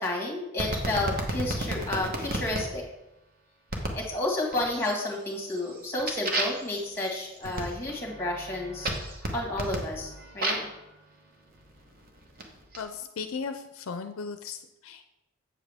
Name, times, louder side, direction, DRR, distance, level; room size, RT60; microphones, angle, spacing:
voice 1, 0.0-2.8 4.0-8.9 9.3-10.7, left 1 dB, 10° left, -1 dB, 1.7 m, -31 dB
sound 1, 0.6-2.6 3.7-4.1 4.5-5.0 5.4-10.8 11.6-12.8, right 1 dB, 40° right, 1.1 m, -33 dB
voice 2, 12.8-15.1, left 5 dB, 65° left, 8 dB, 0.5 m, -37 dB
8.1 x 7.2 x 3.5 m, 0.95 s
head